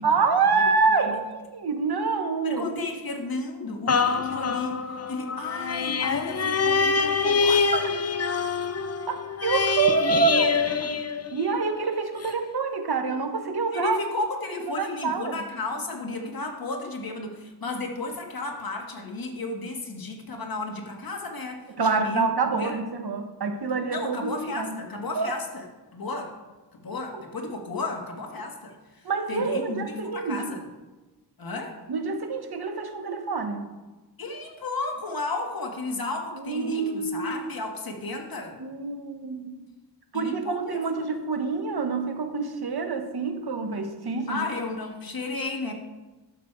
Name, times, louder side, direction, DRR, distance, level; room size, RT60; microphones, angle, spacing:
voice 1, 0.0-2.7 7.7-7.8 9.1-11.0 11.3-14.0 14.8-15.4 21.8-24.8 25.1-25.3 27.1-27.2 29.0-30.4 31.9-33.7 36.4-37.5 38.6-39.6 40.1-44.4, right 4 dB, 65° right, 6 dB, 1.2 m, -27 dB
voice 2, 0.6-1.2 2.4-4.8 5.1-7.7 13.7-22.3 22.6-22.8 23.9-25.7 25.9-26.4 26.7-30.7 31.4-31.8 34.2-38.6 40.1-41.0 44.3-45.7, left 3 dB, 55° left, 2 dB, 1.7 m, -33 dB
sound 1, 3.9-11.7 12.2-12.3, left 5 dB, 35° left, 0.5 m, -25 dB
11.5 x 7.4 x 4.6 m, 1.2 s
wide cardioid pair, 115°, 42 cm